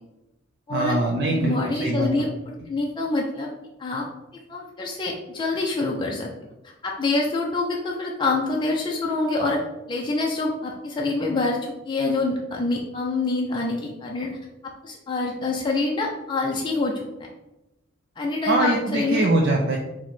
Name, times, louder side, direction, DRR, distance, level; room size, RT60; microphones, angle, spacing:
voice 1, 0.7-2.2 18.5-19.8, right 2 dB, 55° right, 0 dB, 0.4 m, -23 dB
voice 2, 1.3-2.3 2.7-3.5 3.8-4.1 4.5-6.3 6.8-9.6 9.9-11.6 11.8-14.4 14.6-17.0 18.2-19.2, left 3 dB, 25° left, -2 dB, 0.4 m, -26 dB
4.5 x 2.1 x 4.0 m, 0.98 s
head